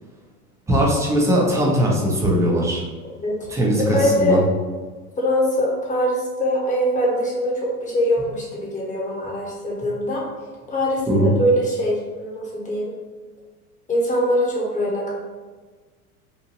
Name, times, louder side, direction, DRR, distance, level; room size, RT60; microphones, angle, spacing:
voice 1, 0.7-2.8 3.5-4.4 11.1-11.3, equal, 5° right, -3 dB, 0.5 m, -19 dB
voice 2, 3.8-4.4 5.2-10.2 10.7-12.9 13.9-15.1, equal, 15° left, -4 dB, 1.0 m, -22 dB
2.7 x 2.6 x 2.9 m, 1.4 s
hypercardioid pair, 95°, 46 cm